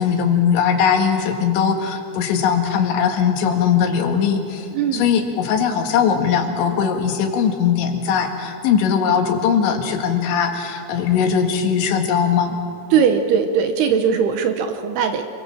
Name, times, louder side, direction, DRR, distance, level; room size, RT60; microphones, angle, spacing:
voice 1, 0.0-12.6, left 7 dB, 80° left, 4 dB, 4.2 m, -20 dB
voice 2, 4.7-5.1 12.9-15.2, right 7 dB, 75° right, 7 dB, 2.8 m, -19 dB
27.5 x 23.0 x 7.3 m, 2.7 s
omnidirectional pair, 5.2 m